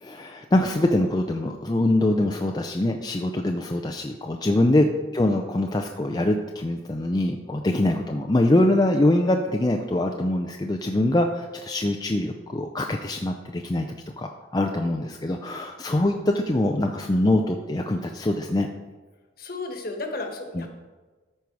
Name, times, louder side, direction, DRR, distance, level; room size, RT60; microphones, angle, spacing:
voice 1, 0.0-4.9 5.1-13.9 14.2-18.7 20.5-20.7, left 1 dB, 20° left, 3 dB, 0.4 m, -23 dB
voice 2, 19.4-20.7, left 2 dB, 50° left, 4 dB, 1.3 m, -34 dB
13.5 x 5.5 x 4.7 m, 1.3 s
head